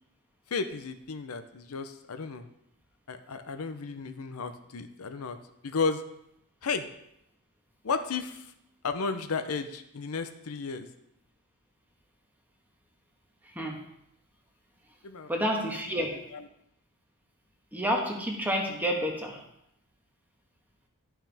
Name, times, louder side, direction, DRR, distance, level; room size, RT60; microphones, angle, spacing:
voice 1, 0.5-2.5 3.1-5.4 5.6-6.0 6.6-6.9 7.8-8.5 8.8-10.9 15.0-15.3 16.0-16.1 16.3-16.4, left 4 dB, 70° left, 8 dB, 0.6 m, -33 dB
voice 2, 13.4-13.8 15.3-16.2 17.7-19.4, equal, 10° right, 0 dB, 1.3 m, -29 dB
12.0 x 5.9 x 3.5 m, 0.80 s
head